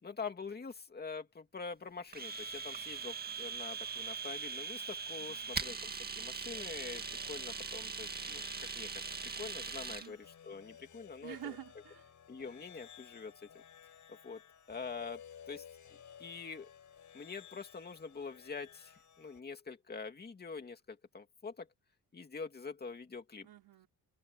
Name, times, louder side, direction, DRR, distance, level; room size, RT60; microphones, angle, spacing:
voice 1, 0.0-11.6 12.3-13.5 14.1-14.4 14.7-15.6 16.2-16.7 17.1-21.7 22.1-23.5, left 5 dB, 25° left, 2.5 m, -45 dB
Domestic sounds home sounds, 2.1-10.1, right 5 dB, 25° right, 2.0 m, -41 dB
voice 2, 5.2-5.5 9.9-10.1 11.2-12.1 23.4-23.9, right 12 dB, 80° right, 5.3 m, -48 dB
sound 1, 6.5-19.4, left 9 dB, 50° left, 5.3 m, -56 dB
wide cardioid pair, 155°, 38 cm